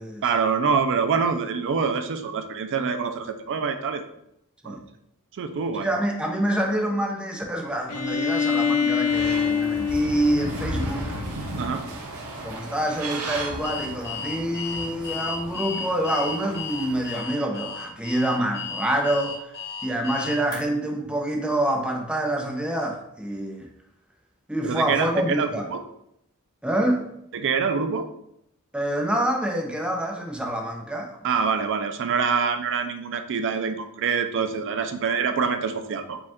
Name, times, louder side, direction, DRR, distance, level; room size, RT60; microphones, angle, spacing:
voice 1, 0.2-4.0 4.6-4.8 5.3-5.9 11.6-11.8 24.6-25.8 27.3-28.1 31.2-36.2, right 5 dB, 55° right, 8 dB, 0.4 m, -25 dB
voice 2, 5.8-11.1 12.4-19.5 19.8-23.7 24.5-25.7 26.6-27.0 28.7-31.2, right 1 dB, 5° right, 1 dB, 0.6 m, -26 dB
Bowed string instrument, 7.9-11.6, left 6 dB, 85° left, 0.5 m, -26 dB
sound 1, 9.1-17.2, right 1 dB, 90° right, 0.7 m, -35 dB
Alarm, 13.6-20.6, left 5 dB, 45° left, 1.5 m, -34 dB
5.0 x 2.3 x 3.5 m, 0.77 s
head